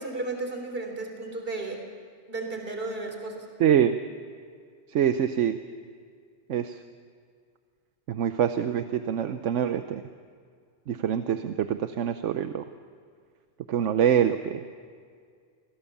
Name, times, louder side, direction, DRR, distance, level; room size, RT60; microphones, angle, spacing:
voice 1, 0.0-1.8 2.3-3.5, right 2 dB, 50° right, 3 dB, 3.4 m, -34 dB
voice 2, 3.6-4.0 4.9-5.6 6.5-6.8 8.1-10.0 10.9-12.6 13.7-14.6, right 9 dB, 85° right, 9 dB, 1.1 m, -25 dB
25.0 x 17.5 x 7.2 m, 2.1 s
omnidirectional pair, 1.2 m